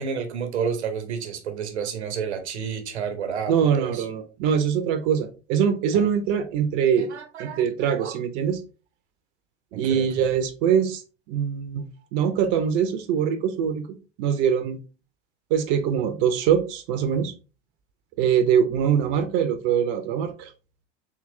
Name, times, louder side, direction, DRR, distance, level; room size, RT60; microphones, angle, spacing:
voice 1, 0.0-4.0 5.9-6.0 7.0-8.2 9.9-10.3, right 6 dB, 70° right, 0.8 m, -31 dB
voice 2, 3.5-7.1 7.4-8.6 9.7-11.0 11.3-11.8 12.1-14.8 15.5-17.3 18.2-20.5, right 8 dB, 45° right, 0.6 m, -23 dB
3.8 x 2.9 x 3.0 m
figure-of-eight pair, 75°, 34 cm